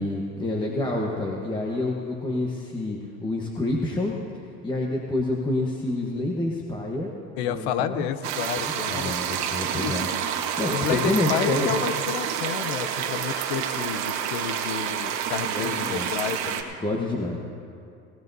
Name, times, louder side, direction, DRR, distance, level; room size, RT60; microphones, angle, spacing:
voice 1, 0.0-4.1 4.6-7.1 7.5-8.1 8.6-10.1 10.6-11.7 15.5-16.1 16.8-17.4, left 2 dB, 15° left, -1 dB, 1.1 m, -28 dB
voice 2, 7.4-9.1 9.8-10.0 10.7-16.6, left 9 dB, 85° left, 12 dB, 0.8 m, -30 dB
sound 1, 8.2-16.6, right 8 dB, 60° right, 1.3 m, -28 dB
18.5 x 18.5 x 2.7 m, 2.5 s
cardioid pair, 135°, 31 cm